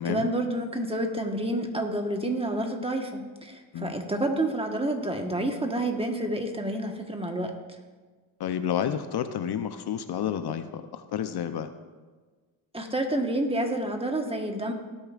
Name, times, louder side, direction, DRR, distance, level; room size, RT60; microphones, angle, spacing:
voice 1, 0.0-7.5 12.7-14.7, right 1 dB, 10° right, 3 dB, 1.3 m, -29 dB
voice 2, 8.4-11.7, left 9 dB, 60° left, 9 dB, 0.7 m, -30 dB
17.5 x 8.6 x 2.5 m, 1.4 s
cardioid pair, 90°, 45 cm